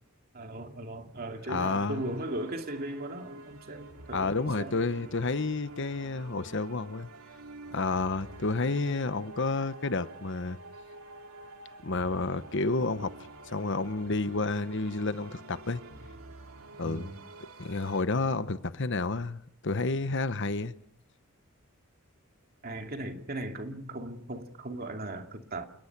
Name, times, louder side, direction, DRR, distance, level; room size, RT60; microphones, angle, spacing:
voice 1, 0.3-4.8 16.8-17.2 22.6-25.6, right 1 dB, 45° right, 2.5 m, -38 dB
voice 2, 1.5-2.1 4.1-7.1 7.7-10.6 11.8-13.1 13.5-15.8 16.8-17.1 17.6-20.7, left 3 dB, 60° left, 1.1 m, -30 dB
sound 1, 1.7-18.0, right 2 dB, 90° right, 2.6 m, -48 dB
29.0 x 18.5 x 6.1 m
head